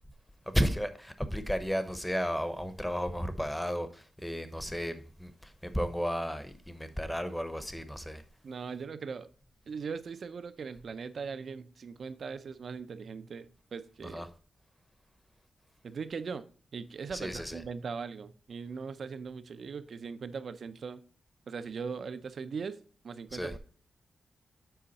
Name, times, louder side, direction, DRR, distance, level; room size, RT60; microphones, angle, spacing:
voice 1, 0.5-8.2 14.0-14.3 17.1-17.6 23.3-23.6, equal, 5° left, 0.8 m, -33 dB
voice 2, 8.4-9.3 9.7-14.2 15.8-16.4 16.7-21.0 21.5-22.8 23.0-23.6, right 5 dB, 55° right, 0.6 m, -40 dB
7.9 x 5.0 x 4.1 m
wide cardioid pair, 120°, 0 cm